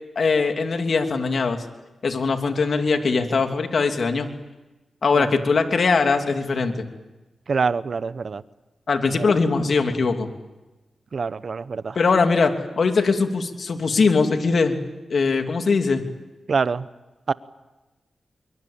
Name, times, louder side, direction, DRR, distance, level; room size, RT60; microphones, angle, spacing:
voice 1, 0.1-1.6 2.0-4.3 5.0-6.9 8.9-10.3 11.9-14.8 15.1-16.0, left 4 dB, 65° left, 5 dB, 3.0 m, -21 dB
voice 2, 7.5-8.4 9.2-9.4 11.1-12.0 16.5-16.9 17.3-17.4, right 5 dB, 65° right, 16 dB, 1.0 m, -25 dB
25.0 x 24.0 x 8.8 m, 1.1 s
cardioid pair, 55°, 0 cm